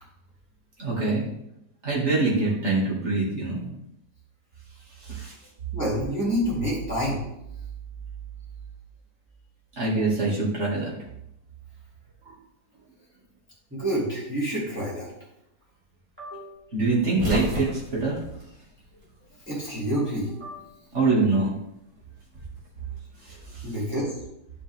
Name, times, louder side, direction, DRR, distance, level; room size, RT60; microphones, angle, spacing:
voice 1, 0.8-1.3 1.8-3.7 5.0-5.3 9.8-10.9 12.3-12.4 16.7-18.2 20.9-21.5 23.2-23.7, right 3 dB, 40° right, -4 dB, 2.5 m, -24 dB
voice 2, 5.7-7.2 13.7-15.1 16.2-16.6 19.5-20.6 23.6-24.1, equal, 5° right, -8 dB, 2.8 m, -28 dB
sound 1, 16.9-19.4 19.7-20.8 21.9-23.4, equal, 80° right, 2.7 m, -33 dB
11.5 x 5.2 x 3.6 m, 0.80 s
omnidirectional pair, 2.0 m